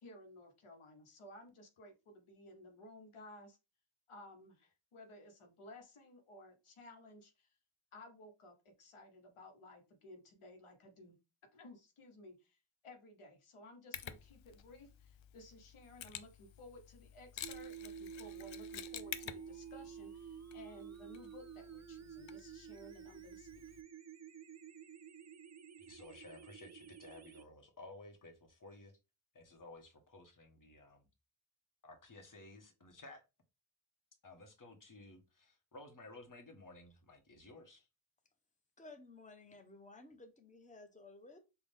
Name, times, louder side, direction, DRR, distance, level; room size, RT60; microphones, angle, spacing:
voice 1, 0.0-3.6 4.1-7.5 7.9-11.2 11.5-23.5, left 1 dB, 90° left, 0.9 m, -56 dB
Mechanisms, 13.9-23.8, left 10 dB, 65° left, 0.5 m, -51 dB
sound 1, 17.4-27.4, right 8 dB, 35° right, 0.5 m, -51 dB
voice 2, 25.8-28.9 29.3-31.1 31.8-33.2 34.2-37.9, left 2 dB, 40° left, 1.2 m, -55 dB
voice 3, 38.8-41.4, left 2 dB, 15° left, 0.8 m, -55 dB
3.9 x 2.3 x 3.4 m
cardioid pair, 50°, 49 cm